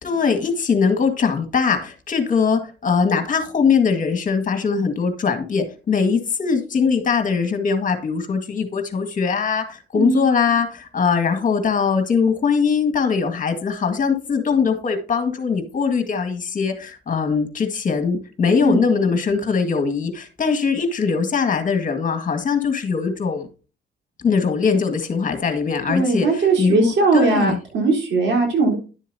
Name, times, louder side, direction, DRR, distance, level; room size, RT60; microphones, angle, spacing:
voice 1, 0.0-23.5 24.2-27.6, left 5 dB, 40° left, 6 dB, 1.9 m, -21 dB
voice 2, 25.9-28.8, right 3 dB, 65° right, 0 dB, 3.9 m, -19 dB
11.0 x 7.3 x 2.8 m, 0.34 s
cardioid pair, 90°, 20 cm